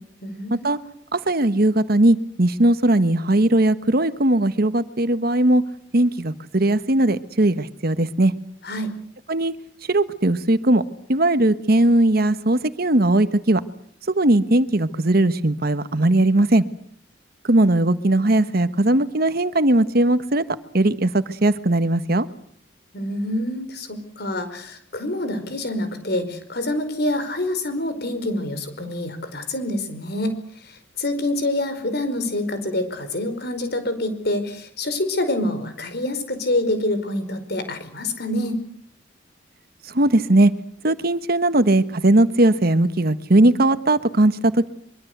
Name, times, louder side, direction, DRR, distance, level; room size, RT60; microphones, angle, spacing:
voice 1, 0.2-0.7 8.6-8.9 22.9-30.4 30.6-38.6, left 1 dB, 60° left, 9 dB, 5.2 m, -26 dB
voice 2, 1.1-5.6 5.9-8.3 9.3-9.5 9.9-10.8 11.1-13.6 14.1-16.6 17.5-20.4 20.7-22.3 39.9-40.5 40.8-44.7, right 1 dB, 55° right, 13 dB, 1.3 m, -18 dB
24.5 x 24.0 x 8.1 m, 0.63 s
head